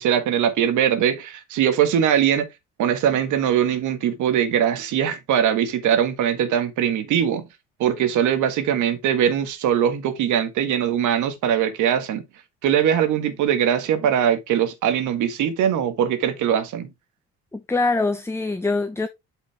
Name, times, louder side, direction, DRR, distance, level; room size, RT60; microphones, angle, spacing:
voice 1, 0.0-2.5 2.8-7.5 7.8-12.2 12.6-16.9, right 9 dB, 65° right, 1.7 m, -21 dB
voice 2, 17.5-19.1, left 3 dB, 10° left, 1.0 m, -23 dB
8.1 x 5.3 x 3.4 m
supercardioid pair, 70°, 32 cm